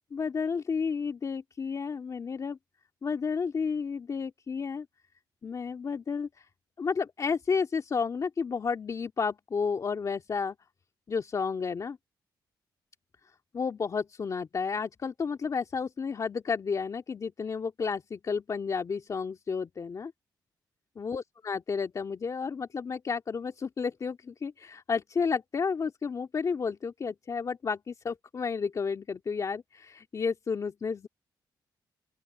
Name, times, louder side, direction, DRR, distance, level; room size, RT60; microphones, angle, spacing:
voice 1, 0.1-2.6 3.0-4.9 5.4-6.5 6.8-10.6 11.1-12.0 13.5-20.1 21.0-31.1, left 5 dB, 45° left, 2.4 m, -31 dB
open air
cardioid pair, 90°, 8 cm